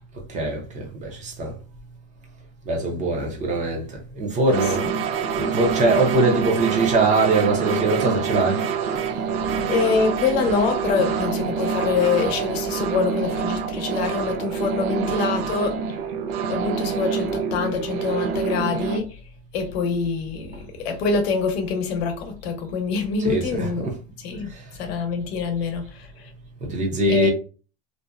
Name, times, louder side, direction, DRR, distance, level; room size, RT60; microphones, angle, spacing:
voice 1, 0.3-1.5 2.7-3.8 4.1-4.9 5.3-8.6 23.2-23.9 26.6-27.3, right 2 dB, 25° right, 0.6 m, -22 dB
voice 2, 4.5-4.9 9.7-15.8 16.5-19.1 19.5-23.9 24.2-24.5 24.8-26.3 27.1-27.3, left 5 dB, 80° left, 0.8 m, -25 dB
sound 1, 4.5-19.0, right 6 dB, 70° right, 0.6 m, -26 dB
2.6 x 2.1 x 2.3 m
supercardioid pair, 140°, 31 cm